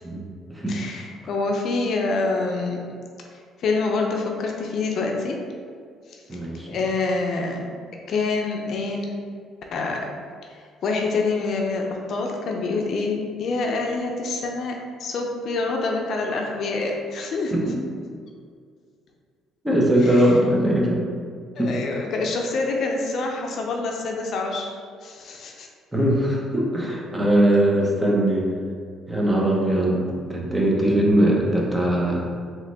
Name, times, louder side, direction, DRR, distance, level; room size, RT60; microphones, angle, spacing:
voice 1, 0.7-2.8 3.6-5.4 6.7-7.7 8.1-9.1 9.7-10.1 10.8-17.7 20.0-20.2 21.6-24.7 25.0-25.7, left 3 dB, 60° left, 1 dB, 0.5 m, -26 dB
voice 2, 6.3-6.8 17.5-17.8 19.6-21.0 21.6-21.8 25.9-28.5 29.1-32.2, right 1 dB, 10° right, -3 dB, 0.9 m, -21 dB
3.7 x 3.0 x 3.4 m, 2.1 s
cardioid pair, 90°, 0 cm